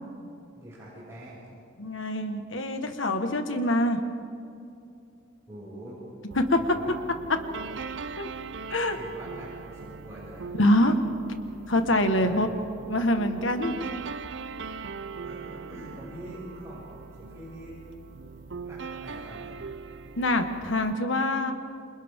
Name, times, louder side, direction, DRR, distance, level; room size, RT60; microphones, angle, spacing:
voice 1, 0.6-1.5 5.5-6.1 6.6-7.0 7.6-7.8 8.9-10.5 12.2-12.6 15.2-17.8 18.6-19.5, right 1 dB, 15° right, -10 dB, 6.9 m, -44 dB
voice 2, 1.8-4.0 6.3-6.8 8.2-8.3 8.7-9.0 10.6-11.0 11.7-12.5 12.9-13.7 20.2-21.5, left 1 dB, 85° left, 6 dB, 1.6 m, -24 dB
sound 1, 6.3-20.9, right 5 dB, 65° right, 0.7 m, -41 dB
28.5 x 27.0 x 3.8 m, 2.6 s
head